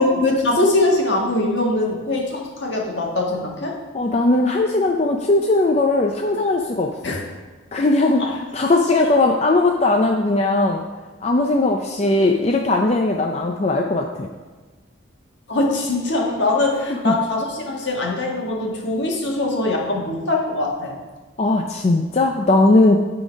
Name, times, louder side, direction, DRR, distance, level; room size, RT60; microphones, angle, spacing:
voice 1, 0.0-3.7 7.0-7.2 8.2-8.3 15.5-20.9, left 2 dB, 65° left, -1 dB, 1.6 m, -22 dB
voice 2, 3.9-7.2 7.7-10.8 11.2-14.3 16.9-17.1 21.4-23.0, left 2 dB, 35° left, 2 dB, 0.4 m, -18 dB
11.5 x 3.9 x 5.1 m, 1.4 s
head